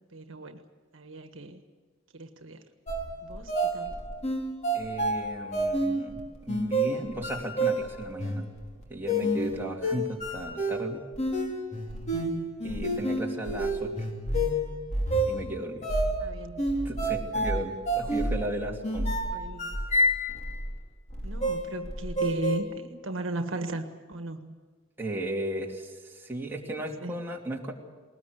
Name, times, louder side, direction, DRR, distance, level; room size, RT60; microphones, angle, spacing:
voice 1, 0.1-0.6 0.9-1.6 2.1-2.6 3.2-3.9 16.2-16.7 18.0-18.1 19.3-19.8 21.2-24.5 27.0-27.3, right 2 dB, 70° right, 7 dB, 1.5 m, -36 dB
sound 1, 2.9-20.8 21.1-22.6, right 1 dB, 35° left, 3.2 m, -29 dB
voice 2, 4.7-8.5 8.9-11.0 12.6-14.1 15.3-15.9 16.8-19.2 25.0-27.7, right 1 dB, 10° right, -1 dB, 2.9 m, -35 dB
21.0 x 19.5 x 8.2 m, 1.4 s
head